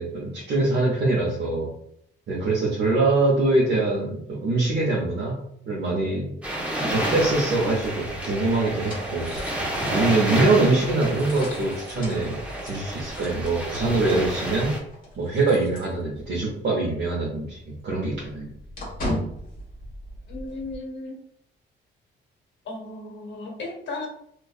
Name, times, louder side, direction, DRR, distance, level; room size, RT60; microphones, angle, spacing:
voice 1, 0.0-1.7 2.3-5.4 5.7-6.3 6.9-14.7 15.2-18.5, right 2 dB, 60° right, -5 dB, 0.7 m, -24 dB
sound 1, 6.4-14.8, right 1 dB, 5° right, 0.7 m, -30 dB
sound 2, 7.8-16.5 16.8-16.9 17.3-20.8, equal, 45° left, 1.1 m, -38 dB
voice 2, 20.3-21.1 22.7-24.1, left 2 dB, 65° left, 1 dB, 0.8 m, -35 dB
2.5 x 2.3 x 2.3 m, 0.70 s
cardioid pair, 90°, 20 cm